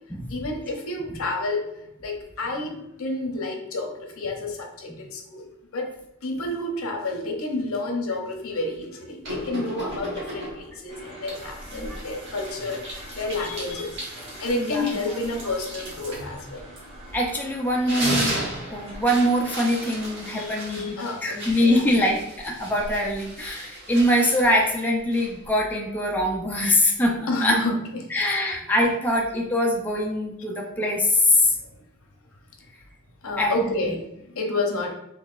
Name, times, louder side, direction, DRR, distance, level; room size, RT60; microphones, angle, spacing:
voice 1, 0.3-1.6 2.0-5.4 5.7-5.9 6.2-13.9 14.4-16.7 20.3-21.9 27.3-28.1 33.2-34.9, left 2 dB, 75° left, 2 dB, 0.7 m, -30 dB
sound 1, 9.2-10.8 11.3-17.3 17.7-25.5, right 1 dB, 55° right, 1.2 m, -35 dB
sound 2, 10.9-20.3, right 1 dB, 30° right, 1.1 m, -43 dB
voice 2, 14.6-14.9 17.1-18.4 18.7-27.6 28.1-31.5 33.4-33.9, left 1 dB, 10° left, -1 dB, 0.4 m, -23 dB
3.9 x 3.1 x 2.4 m, 0.84 s
head